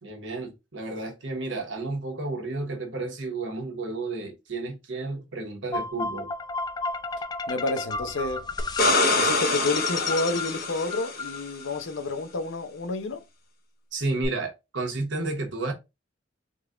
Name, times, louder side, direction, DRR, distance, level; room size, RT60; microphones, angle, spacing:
voice 1, 0.0-6.3 13.9-15.7, right 3 dB, 70° right, 1.1 m, -32 dB
sound 1, 5.7-11.8, left 4 dB, 20° left, 0.3 m, -33 dB
voice 2, 7.5-8.5 9.1-13.2, left 2 dB, 70° left, 0.6 m, -29 dB
sound 2, 8.6-11.4 14.2-14.3, left 2 dB, 55° left, 1.0 m, -25 dB
3.9 x 2.3 x 3.7 m
head